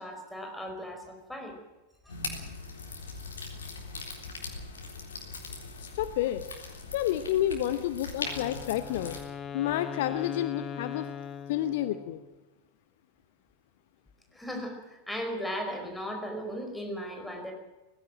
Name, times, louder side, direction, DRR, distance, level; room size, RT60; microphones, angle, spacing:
voice 1, 0.0-1.6 2.0-2.1 14.3-17.5, equal, 5° left, 3 dB, 4.8 m, -37 dB
sound 1, 2.1-9.2, left 3 dB, 70° left, 3.8 m, -40 dB
voice 2, 5.8-6.4 6.9-9.2 9.5-11.1 11.5-12.2, left 12 dB, 50° left, 12 dB, 0.9 m, -29 dB
Wind instrument woodwind instrument, 8.2-12.3, left 7 dB, 25° left, 1.4 m, -40 dB
18.0 x 16.5 x 8.8 m, 1.1 s
figure-of-eight pair, 90°, 0 cm